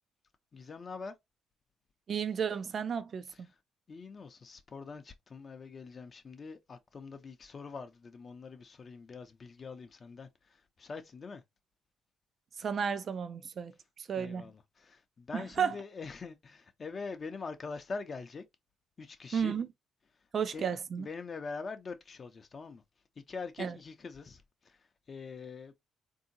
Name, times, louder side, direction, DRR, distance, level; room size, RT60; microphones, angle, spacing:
voice 1, 0.5-1.1 3.3-3.6 3.9-11.4 14.1-18.4 19.0-19.6 20.5-22.8 23.3-25.7, left 4 dB, 40° left, 0.5 m, -44 dB
voice 2, 2.1-3.5 12.6-13.7 14.1-14.5 15.3-15.8 19.3-19.7 20.3-21.1 23.6-23.7, right 7 dB, 50° right, 0.4 m, -33 dB
3.6 x 2.7 x 2.6 m
cardioid pair, 90°, 0 cm